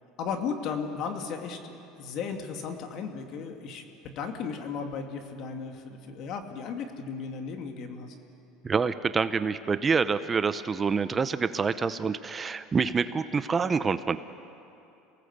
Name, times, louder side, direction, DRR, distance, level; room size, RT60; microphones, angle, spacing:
voice 1, 0.2-3.8 4.2-8.1, left 6 dB, 55° left, 4 dB, 2.6 m, -35 dB
voice 2, 8.6-14.2, right 5 dB, 25° right, 12 dB, 0.8 m, -27 dB
28.0 x 18.5 x 8.2 m, 2.8 s
supercardioid pair, 115°, 0 cm